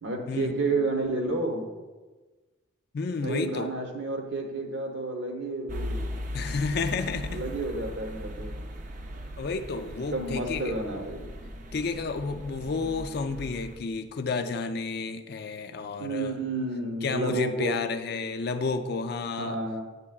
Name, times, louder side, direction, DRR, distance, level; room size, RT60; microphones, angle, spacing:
voice 1, 0.0-1.7 3.2-6.2 7.3-8.5 10.1-11.3 16.0-17.8 19.4-19.8, right 2 dB, 60° right, 2 dB, 1.1 m, -31 dB
voice 2, 2.9-3.7 6.3-7.4 9.4-10.7 11.7-16.3 17.0-19.6, left 4 dB, 50° left, 8 dB, 0.4 m, -31 dB
sound 1, 5.7-13.8, left 1 dB, 40° right, 0.5 m, -38 dB
9.7 x 8.4 x 2.4 m, 1.3 s
head